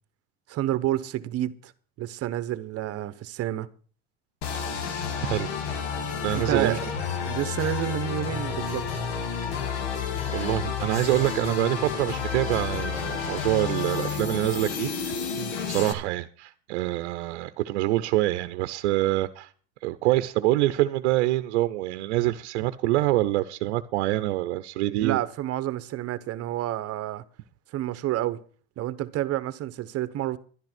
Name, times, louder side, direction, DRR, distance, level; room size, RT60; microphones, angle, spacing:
voice 1, 0.5-1.7 2.0-3.7 6.3-6.8 7.2-9.0 15.3-15.5 25.0-27.2 27.7-28.4 28.8-30.4, right 13 dB, 45° right, 1.1 m, -29 dB
sound 1, 4.4-15.9, left 6 dB, 85° left, 2.1 m, -30 dB
voice 2, 5.2-5.6 6.2-6.8 10.3-15.1 15.7-19.5 19.8-25.2, right 16 dB, 85° right, 0.7 m, -25 dB
11.5 x 11.0 x 6.1 m
supercardioid pair, 110°, 33 cm